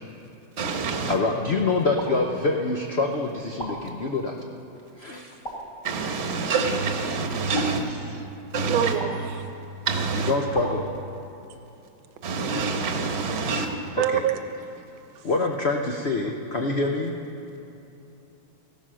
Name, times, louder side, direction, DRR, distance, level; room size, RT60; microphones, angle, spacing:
voice 1, 0.6-1.2 5.8-7.9 8.5-8.9 9.9-10.3 12.2-13.7, right 4 dB, 40° right, 1.2 m, -26 dB
voice 2, 1.1-4.3 5.0-5.4 10.1-10.9 14.1-14.2 15.2-17.1, left 3 dB, 80° left, 0.5 m, -25 dB
sound 1, 2.0-2.9 3.6-4.5 5.4-6.3 7.5-8.5 9.0-9.8 10.5-11.5, right 1 dB, 40° left, 3.6 m, -39 dB
voice 3, 8.7-9.3 14.0-14.4, right 10 dB, 80° right, 1.6 m, -24 dB
15.0 x 12.0 x 6.2 m
omnidirectional pair, 2.2 m